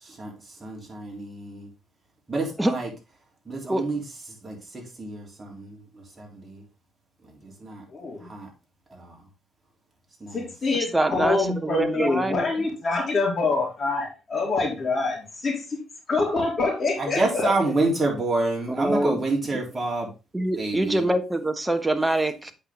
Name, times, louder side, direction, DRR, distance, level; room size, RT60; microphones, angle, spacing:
voice 1, 0.0-0.3 0.6-1.7 2.3-2.9 3.5-4.0 4.4-6.6 7.3-7.8 8.2-8.5 8.9-9.2 10.2-10.5 17.0-20.1 20.6-21.1, right 2 dB, 25° right, -1 dB, 3.6 m, -28 dB
voice 2, 7.9-8.3 10.3-15.8 16.1-17.5, left 3 dB, 40° left, 0 dB, 3.7 m, -26 dB
voice 3, 10.9-12.5 18.8-19.2 20.3-22.5, right 1 dB, 10° right, 9 dB, 1.1 m, -24 dB
8.1 x 5.7 x 3.8 m, 0.30 s
cardioid pair, 90°, 0 cm